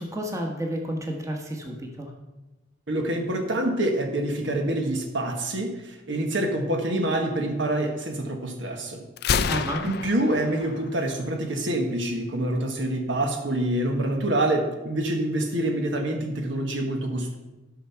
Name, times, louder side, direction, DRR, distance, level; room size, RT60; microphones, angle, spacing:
voice 1, 0.0-2.1 9.5-9.9, equal, 15° right, 1 dB, 1.3 m, -31 dB
voice 2, 2.9-9.0 9.8-17.4, right 1 dB, 65° right, 4 dB, 1.4 m, -26 dB
Gunshot gunfire, 9.2-11.1, left 6 dB, 55° left, 0.5 m, -28 dB
12.0 x 6.1 x 5.7 m, 1.1 s
head